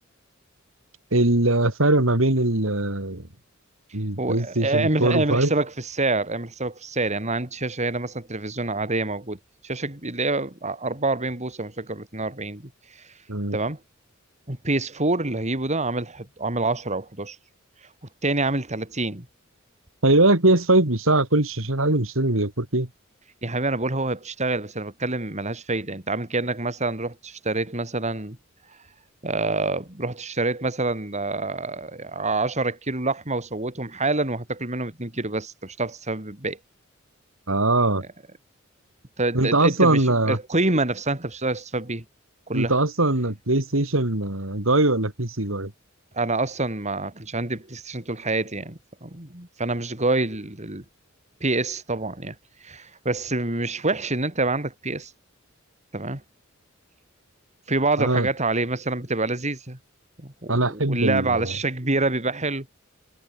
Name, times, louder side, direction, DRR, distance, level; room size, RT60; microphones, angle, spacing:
voice 1, 1.1-3.2 3.9-5.5 13.3-13.6 20.0-22.9 37.5-38.0 39.3-40.4 42.5-45.7 58.0-58.3 60.5-61.5, right 2 dB, 75° right, 3.3 m, -21 dB
voice 2, 4.2-9.4 9.6-12.7 13.0-13.1 13.5-13.8 14.5-17.4 18.2-19.3 23.4-28.4 29.2-36.6 39.2-42.0 42.5-42.7 46.1-50.8 51.4-52.3 52.6-55.1 55.9-56.2 57.7-59.8 60.2-62.7, right 2 dB, 35° right, 4.0 m, -27 dB
head